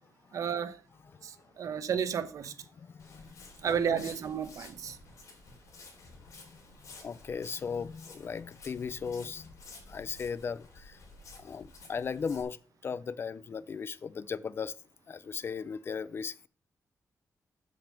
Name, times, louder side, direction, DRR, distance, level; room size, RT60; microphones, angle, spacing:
voice 1, 0.3-0.8 1.6-2.5 3.6-5.0, right 7 dB, 65° right, 1.0 m, -31 dB
voice 2, 2.7-3.3 3.6-4.0 6.3-6.6 7.0-9.5 9.9-11.0 11.3-14.7 15.1-16.5, left 6 dB, 40° left, 0.5 m, -37 dB
Walk footsteps, 3.0-12.4, left 3 dB, 55° left, 3.6 m, -52 dB
7.5 x 7.3 x 6.2 m
wide cardioid pair, 165°, 6 cm